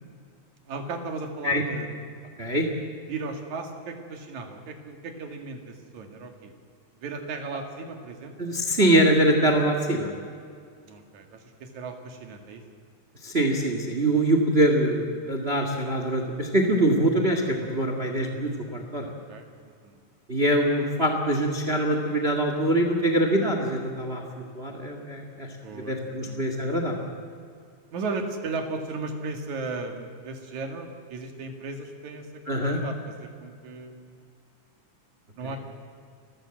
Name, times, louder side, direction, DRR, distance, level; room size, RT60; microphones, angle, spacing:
voice 1, 0.7-2.0 3.1-6.5 7.0-8.3 10.9-12.6 19.3-20.0 25.6-26.7 27.9-32.3 32.7-34.2 35.4-35.6, right 3 dB, 70° right, 4 dB, 3.5 m, -36 dB
voice 2, 8.4-10.1 13.2-19.1 20.3-27.0 32.5-32.8 35.4-35.6, right 1 dB, 25° right, 4 dB, 1.7 m, -24 dB
29.5 x 15.0 x 7.7 m, 2.2 s
omnidirectional pair, 3.4 m